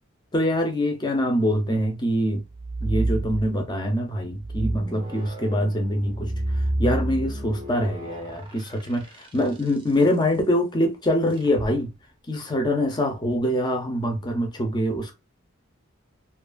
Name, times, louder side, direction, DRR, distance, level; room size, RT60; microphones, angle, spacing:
voice 1, 0.3-2.4 2.8-6.3 6.8-11.9 12.3-15.1, equal, 20° left, 0.5 m, -24 dB
sound 1, 2.4-3.9 4.3-9.8 11.4-11.7, right 1 dB, 25° right, 0.5 m, -30 dB
2.7 x 2.3 x 2.2 m
head